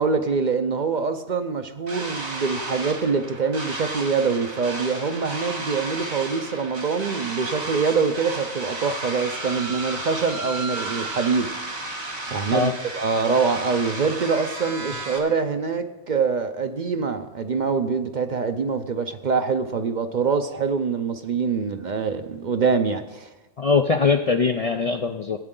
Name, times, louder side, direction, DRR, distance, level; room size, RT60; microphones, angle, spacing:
voice 1, 0.0-11.5 12.3-23.3, right 5 dB, 50° right, 8 dB, 0.7 m, -24 dB
sound 1, 1.9-15.2, right 2 dB, 70° right, 2.1 m, -33 dB
voice 2, 23.6-25.4, left 5 dB, 50° left, 5 dB, 0.4 m, -21 dB
16.5 x 8.8 x 3.8 m, 1.1 s
omnidirectional pair, 1.1 m